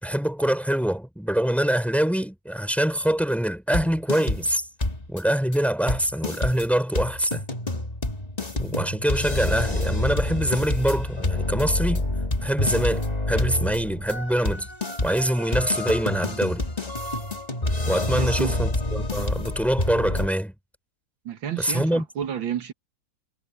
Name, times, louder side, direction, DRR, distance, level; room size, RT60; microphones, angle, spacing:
voice 1, 0.0-4.7 5.1-7.4 8.6-12.1 12.4-14.7 15.0-16.6 17.9-20.5 21.6-22.0, right 1 dB, ahead, 3.6 m, -24 dB
sound 1, 3.7-4.5 4.8-5.2 5.5-5.6 5.9-20.3, left 2 dB, 20° left, 2.0 m, -27 dB
voice 2, 18.2-18.7 21.2-22.7, right 9 dB, 90° right, 2.4 m, -31 dB
omnidirectional pair, 2.0 m